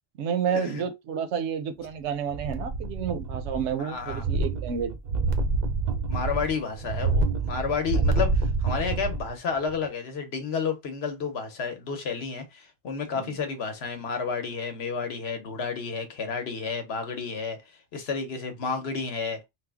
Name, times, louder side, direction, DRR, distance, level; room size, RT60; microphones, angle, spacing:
voice 1, 0.2-5.0 13.1-13.4, right 7 dB, 80° right, 0.9 m, -30 dB
sound 1, 2.3-3.8 4.0-9.3 9.7-9.8, right 3 dB, 55° right, 0.5 m, -27 dB
voice 2, 3.8-4.3 6.1-17.6 17.9-19.4, left 5 dB, 65° left, 1.0 m, -31 dB
3.1 x 2.1 x 3.3 m
omnidirectional pair, 1.2 m